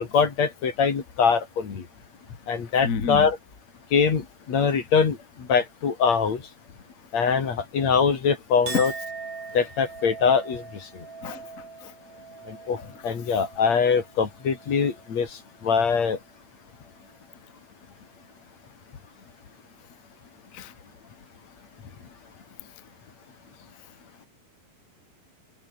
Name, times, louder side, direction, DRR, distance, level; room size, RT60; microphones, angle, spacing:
voice 1, 0.0-1.8 2.5-3.4 3.9-6.4 7.1-8.9 9.5-10.6 12.5-12.8 13.0-15.3 15.6-16.2, left 6 dB, 50° left, 4.2 m, -23 dB
voice 2, 2.8-3.3 8.7-8.8 11.2-11.4 11.8-11.9 20.5-20.7, left 5 dB, 30° left, 1.6 m, -28 dB
Chink clink, 8.7-15.2 15.6-16.2, right 5 dB, 60° right, 6.7 m, -41 dB
omnidirectional pair, 4.1 m